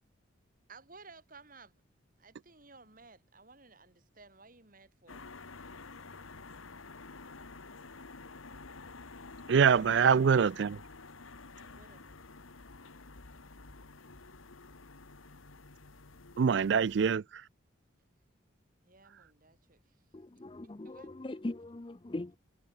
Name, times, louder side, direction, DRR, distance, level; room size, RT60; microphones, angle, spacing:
voice 1, 0.7-1.8 2.2-5.3 9.9-10.4 11.6-12.1 18.8-20.0 20.6-21.4, right 3 dB, 45° right, 3.6 m, -57 dB
sound 1, 5.1-17.2, left 3 dB, 90° left, 1.7 m, -50 dB
voice 2, 9.5-10.8 16.4-17.2, right 6 dB, 60° right, 0.4 m, -24 dB
voice 3, 20.1-22.4, left 2 dB, 25° left, 0.5 m, -40 dB
head